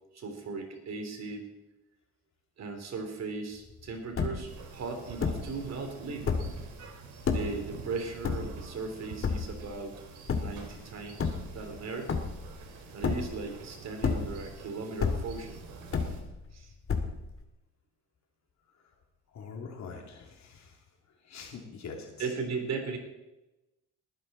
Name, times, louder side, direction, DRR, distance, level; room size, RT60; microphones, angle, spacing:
voice 1, 0.1-1.5 2.6-6.3 6.8-9.9 10.3-12.2 12.9-15.6 16.5-16.7 22.2-23.0, right 4 dB, 60° right, 5 dB, 3.3 m, -37 dB
sound 1, 3.7-3.8 4.0-4.6 5.2-5.6 6.1-6.7 7.2-7.6 8.2-8.8 9.2-9.7 10.3-10.7 11.1-11.8 12.1-12.6 13.0-13.6 13.9-14.6 15.0-15.5 15.9-16.5 16.9-17.4, left 5 dB, 45° left, 1.9 m, -30 dB
sound 2, 4.5-16.2, right 6 dB, 90° right, 2.5 m, -48 dB
voice 2, 19.3-20.7 21.3-22.1, left 5 dB, 65° left, 2 dB, 3.1 m, -43 dB
20.0 x 10.0 x 4.3 m, 1.0 s
cardioid pair, 90°, 30 cm